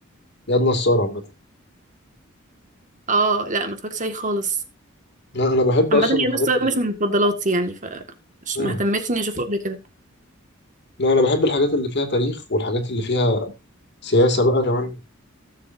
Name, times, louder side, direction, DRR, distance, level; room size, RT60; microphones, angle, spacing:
voice 1, 0.5-1.2 5.3-6.7 8.5-8.8 11.0-13.5 14.0-15.0, left 1 dB, 55° left, 2.5 m, -20 dB
voice 2, 3.1-4.6 5.9-8.0 8.5-9.8, right 2 dB, 40° right, 1.9 m, -23 dB
17.5 x 7.7 x 2.7 m
head